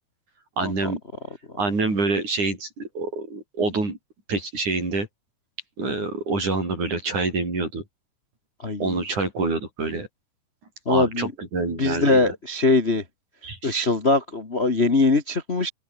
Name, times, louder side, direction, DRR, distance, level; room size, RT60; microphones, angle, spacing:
voice 1, 0.6-1.0 1.6-4.0 4.3-5.1 5.8-7.8 8.8-10.1 10.9-12.3 13.4-13.8, right 3 dB, 65° right, 9.5 m, -26 dB
voice 2, 8.6-9.0 10.8-11.3 11.8-13.0 13.6-15.7, left 3 dB, 25° left, 1.5 m, -21 dB
open air
omnidirectional pair, 3.8 m